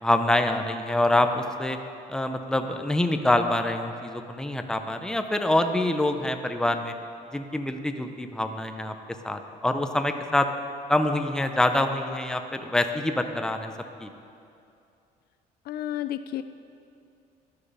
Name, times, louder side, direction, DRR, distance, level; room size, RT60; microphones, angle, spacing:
voice 1, 0.0-1.8 2.1-6.9 7.3-8.9 9.2-10.5 10.9-13.7 14.0-14.1, left 1 dB, 5° left, 6 dB, 0.6 m, -25 dB
voice 2, 15.7-16.4, left 12 dB, 65° left, 12 dB, 0.4 m, -31 dB
12.0 x 6.7 x 5.5 m, 2.6 s
cardioid pair, 110°, 17 cm